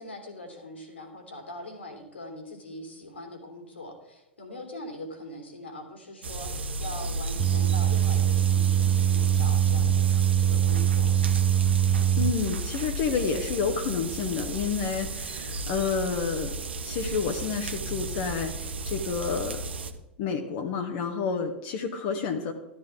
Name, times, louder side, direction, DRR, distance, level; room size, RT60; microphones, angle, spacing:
voice 1, 0.0-10.1 10.4-11.1, left 1 dB, 75° left, 4 dB, 3.1 m, -42 dB
sound 1, 6.2-19.9, right 2 dB, 70° right, 1.1 m, -34 dB
sound 2, 7.4-12.3, right 10 dB, 30° right, 0.7 m, -23 dB
voice 2, 12.2-16.5 16.8-19.6 20.2-22.5, left 5 dB, 45° left, 3 dB, 1.2 m, -29 dB
13.0 x 12.5 x 3.6 m, 0.91 s
figure-of-eight pair, 90°, 6 cm